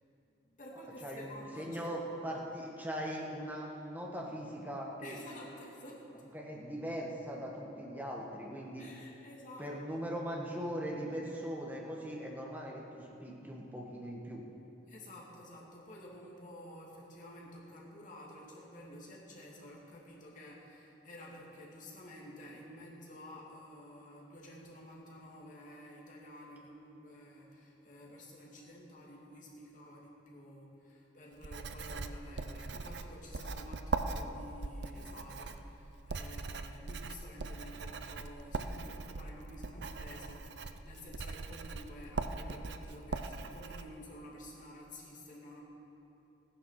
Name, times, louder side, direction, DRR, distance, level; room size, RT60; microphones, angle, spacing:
voice 1, 0.5-1.9 5.0-6.1 8.8-10.0 14.9-45.6, left 1 dB, 40° left, -3 dB, 2.5 m, -51 dB
voice 2, 1.0-5.2 6.3-8.9 9.6-14.4, equal, 10° right, -2 dB, 1.7 m, -40 dB
Writing, 31.4-43.8, right 3 dB, 65° right, 0.6 m, -41 dB
15.5 x 9.9 x 6.6 m, 3.0 s
head